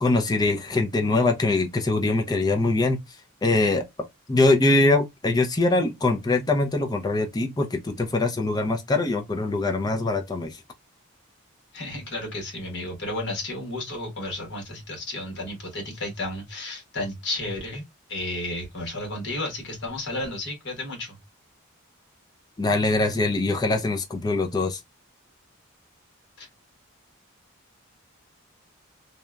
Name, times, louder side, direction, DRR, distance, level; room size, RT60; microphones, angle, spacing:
voice 1, 0.0-3.0 3.4-3.8 4.3-10.6 22.6-24.8, left 2 dB, 20° left, 0.4 m, -23 dB
voice 2, 11.7-17.8 18.1-21.2 26.4-26.5, left 1 dB, 50° left, 1.2 m, -32 dB
2.8 x 2.2 x 2.2 m
head